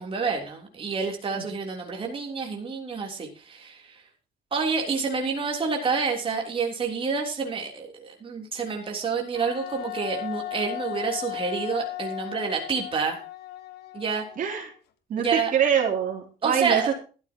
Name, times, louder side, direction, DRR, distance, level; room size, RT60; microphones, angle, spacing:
voice 1, 0.0-4.0 4.5-13.2 13.9-14.2 15.2-15.5 16.4-16.9, right 5 dB, 30° right, 0 dB, 3.3 m, -28 dB
Wind instrument woodwind instrument, 9.3-14.8, left 14 dB, 70° left, 1.7 m, -36 dB
voice 2, 14.4-14.7 15.1-16.9, right 8 dB, 50° right, 1 dB, 3.5 m, -24 dB
14.5 x 13.0 x 2.9 m, 0.36 s
cardioid pair, 110°, 17 cm